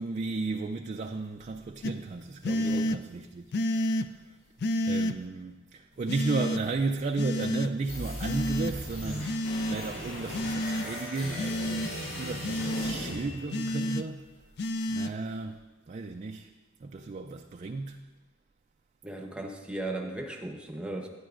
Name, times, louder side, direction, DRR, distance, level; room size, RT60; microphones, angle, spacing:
voice 1, 0.0-3.4 4.1-4.2 4.8-14.3 14.9-15.6 15.9-16.5 16.8-18.0, right 3 dB, 35° right, 0.3 m, -34 dB
sound 1, 1.8-1.9 2.4-3.0 3.5-4.1 4.6-5.1 6.1-6.6 7.2-7.7 8.2-8.7 9.3-9.8 10.3-10.9 11.4-11.9 12.4-13.0 13.5-14.0 14.6-15.1, left 1 dB, 55° left, 0.4 m, -29 dB
voice 2, 2.6-2.9 19.0-21.1, right 2 dB, 5° right, 0.9 m, -36 dB
sound 2, 7.9-13.9, equal, 90° left, 3.5 m, -38 dB
12.0 x 10.5 x 2.5 m
head